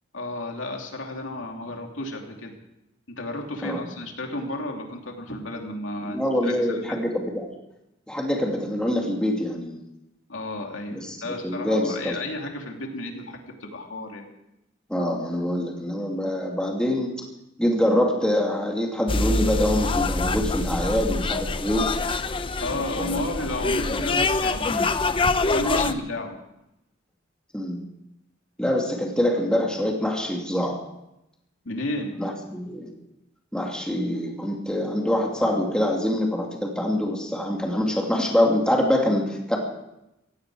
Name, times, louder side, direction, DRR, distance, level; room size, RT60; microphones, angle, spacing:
voice 1, 0.1-2.5 3.1-7.0 10.3-14.3 22.6-25.0 25.5-26.3 31.6-32.1, left 1 dB, 85° left, 2 dB, 2.8 m, -32 dB
voice 2, 6.0-7.5 8.1-9.8 10.9-12.2 14.9-17.1 17.6-22.0 22.7-23.2 25.6-25.8 27.5-27.9 28.6-30.8 32.2-32.9 33.5-39.6, left 1 dB, 5° left, 0 dB, 2.4 m, -25 dB
sound 1, 19.1-25.9, left 3 dB, 25° left, 0.6 m, -25 dB
16.5 x 16.5 x 4.8 m, 0.87 s
head